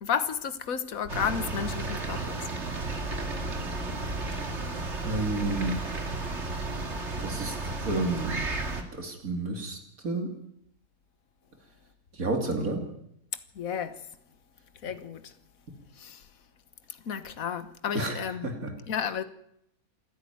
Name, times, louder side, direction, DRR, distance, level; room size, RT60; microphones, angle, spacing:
voice 1, 0.0-2.4 13.6-14.0 14.8-15.2 16.0-16.2 17.1-18.6 18.9-19.2, left 7 dB, 65° left, 1.7 m, -32 dB
sound 1, 1.1-8.8, right 2 dB, 50° right, 2.5 m, -33 dB
voice 2, 5.0-5.8 7.2-7.5 7.8-8.5 8.9-9.8 10.0-10.3 12.2-12.8 17.9-18.7, right 2 dB, 70° right, 3.2 m, -30 dB
27.0 x 10.5 x 9.4 m
omnidirectional pair, 1.6 m